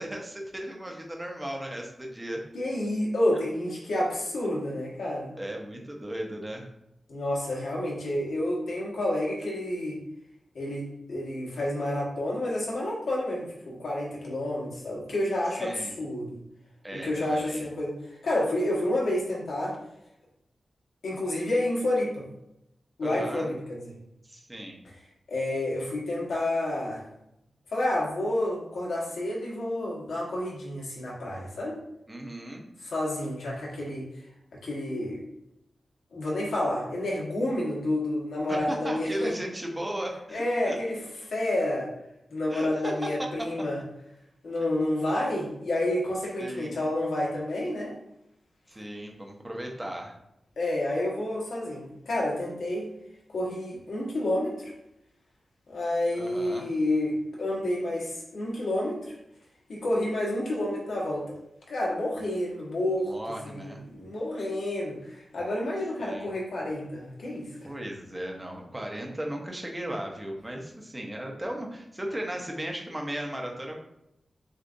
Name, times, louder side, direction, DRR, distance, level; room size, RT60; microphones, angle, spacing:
voice 1, 0.0-2.4 5.4-6.7 15.6-15.9 16.8-17.7 23.0-23.5 24.2-24.8 32.1-32.6 38.5-40.8 42.5-43.5 46.4-46.7 48.7-50.2 56.2-56.6 63.0-63.8 66.0-66.3 67.6-73.8, right 1 dB, 15° right, 1 dB, 0.7 m, -36 dB
voice 2, 2.5-5.3 7.1-10.0 10.5-16.4 16.9-19.8 21.0-22.2 23.0-23.9 25.3-27.0 27.7-31.8 32.8-34.1 34.6-35.3 36.1-39.3 40.3-41.0 41.3-41.9 42.3-43.8 44.4-47.9 50.6-52.9 53.3-54.7 55.7-59.0 59.7-61.3 61.7-63.1 63.4-67.7, left 1 dB, 90° left, -4 dB, 1.2 m, -29 dB
6.4 x 2.4 x 2.6 m, 0.81 s
wide cardioid pair, 145°, 0 cm